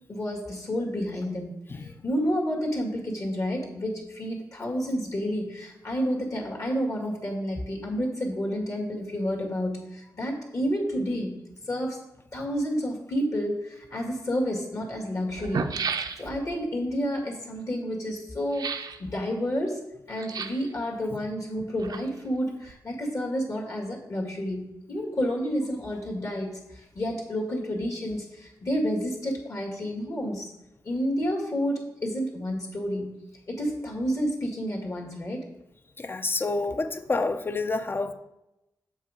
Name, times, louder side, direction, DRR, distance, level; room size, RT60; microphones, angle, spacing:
voice 1, 0.1-1.6 1.8-11.4 11.7-12.0 12.3-15.8 16.2-19.8 20.1-30.5 30.8-33.2 33.5-35.4, equal, 50° left, 0 dB, 2.0 m, -30 dB
voice 2, 1.7-2.0 36.0-38.1, left 3 dB, 30° left, 10 dB, 0.6 m, -28 dB
sound 1, 14.0-14.1 15.0-15.1 15.3-16.5 18.5-19.0 20.2-20.7 21.6-22.4 22.6-22.7, right 5 dB, 70° right, 0.6 m, -33 dB
7.4 x 5.3 x 5.1 m, 0.92 s
wide cardioid pair, 95°, 7 cm